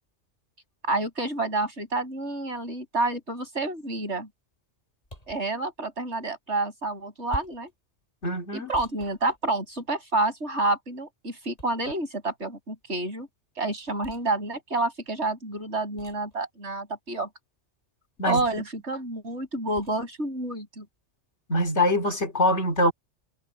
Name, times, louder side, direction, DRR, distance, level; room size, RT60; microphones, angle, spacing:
voice 1, 0.8-4.3 5.3-7.7 8.5-13.3 13.6-17.3 18.3-20.9, right 2 dB, 80° right, 7.3 m, -29 dB
sound 1, 5.0-5.5 7.3-7.7 8.7-9.9 11.6-12.2 14.0-14.3 16.0-16.3 18.4-18.8 19.8-20.0, left 1 dB, 35° left, 7.0 m, -43 dB
voice 2, 8.2-8.7 18.2-18.4 21.5-22.9, left 1 dB, 80° left, 3.2 m, -23 dB
omnidirectional pair, 1.2 m